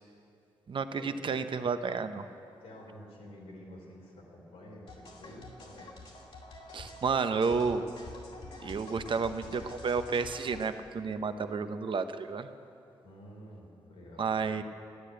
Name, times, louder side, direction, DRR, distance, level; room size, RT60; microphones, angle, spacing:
voice 1, 0.7-2.3 6.7-7.8 8.6-12.5 14.2-14.6, right 5 dB, 55° right, 9 dB, 0.8 m, -31 dB
voice 2, 2.6-5.9 13.0-14.6, equal, 85° left, -2 dB, 3.4 m, -50 dB
sound 1, 4.9-10.7, left 2 dB, 65° left, 2.4 m, -47 dB
13.5 x 9.9 x 8.1 m, 2.7 s
supercardioid pair, 55°, 10 cm